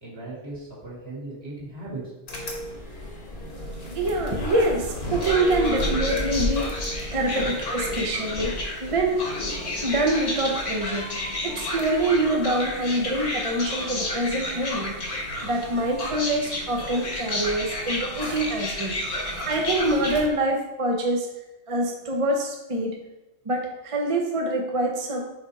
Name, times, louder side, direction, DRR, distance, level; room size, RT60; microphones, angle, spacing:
voice 1, 0.0-2.0 2.3-2.4, right 2 dB, 60° right, -6 dB, 2.3 m, -37 dB
sound 1, 2.3-20.3, left 1 dB, 60° left, 1.4 m, -31 dB
voice 2, 3.9-6.9 7.1-9.3 9.8-11.1 11.4-15.0 15.4-18.9 19.4-21.3 21.7-22.9 23.5-25.2, right 1 dB, 35° right, 1 dB, 0.6 m, -25 dB
5.1 x 4.9 x 4.0 m, 1.0 s
omnidirectional pair, 1.2 m